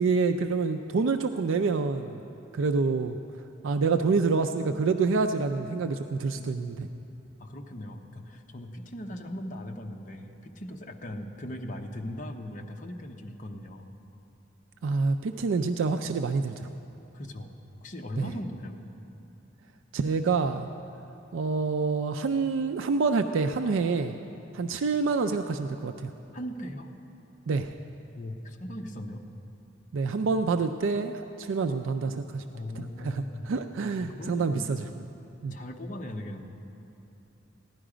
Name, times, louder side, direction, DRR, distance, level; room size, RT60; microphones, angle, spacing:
voice 1, 0.0-2.2 2.5-3.2 3.6-6.9 14.8-16.7 18.2-18.3 19.9-20.7 21.3-24.1 24.5-26.1 27.5-27.7 29.9-32.4 32.8-34.8 35.4-35.5, right 4 dB, 80° right, 7 dB, 0.4 m, -27 dB
voice 2, 6.3-7.1 7.4-13.9 17.1-17.5 17.8-18.8 26.3-26.9 28.1-29.3 32.5-33.5 34.0-34.7 35.5-36.5, left 1 dB, 40° left, 2 dB, 0.9 m, -39 dB
15.5 x 11.0 x 5.0 m, 3.0 s
head